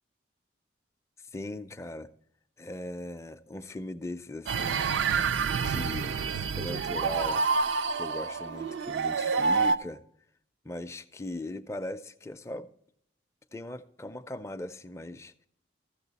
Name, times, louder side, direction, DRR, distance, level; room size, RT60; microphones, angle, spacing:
voice 1, 1.2-2.1 2.6-4.9 5.5-7.4 7.9-10.0 10.6-12.7 13.5-15.5, left 1 dB, 15° left, 0.4 m, -39 dB
sound 1, 4.5-9.8, right 5 dB, 75° right, 0.4 m, -28 dB
14.0 x 6.9 x 4.0 m
head